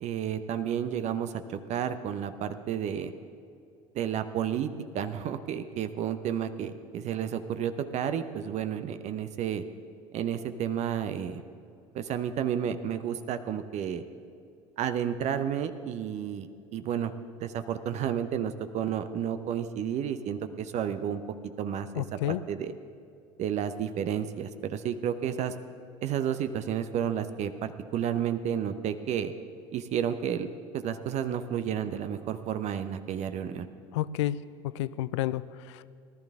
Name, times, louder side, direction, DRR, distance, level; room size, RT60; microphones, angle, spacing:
voice 1, 0.0-3.1 3.9-9.6 10.1-11.4 11.9-14.0 14.8-21.2 21.6-22.0 22.5-22.7 23.4-25.5 26.0-29.3 29.7-30.5 30.7-33.7, right 9 dB, 50° right, 10 dB, 0.7 m, -31 dB
voice 2, 21.9-22.4 33.9-35.9, left 13 dB, 75° left, 17 dB, 0.4 m, -31 dB
18.5 x 12.0 x 3.6 m, 2.4 s
hypercardioid pair, 70°, 15 cm